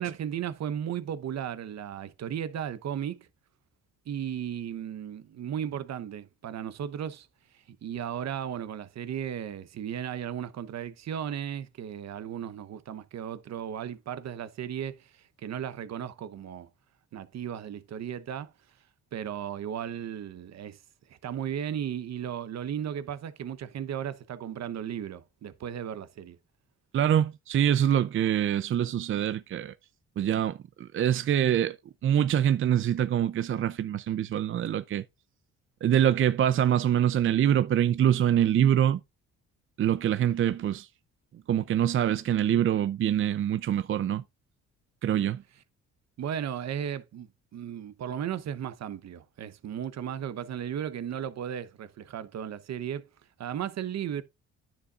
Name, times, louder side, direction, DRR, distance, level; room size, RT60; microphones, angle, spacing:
voice 1, 0.0-3.3 4.1-7.3 7.5-16.7 17.1-18.5 19.1-20.8 21.2-26.4 46.2-53.1 53.4-54.2, right 9 dB, 60° right, 0.9 m, -35 dB
voice 2, 26.9-29.7 30.2-31.8 32.0-35.0 35.8-39.0 39.8-40.9 41.5-44.2 45.0-45.4, right 10 dB, 45° right, 0.5 m, -25 dB
9.9 x 7.0 x 2.4 m
cardioid pair, 90°, 30 cm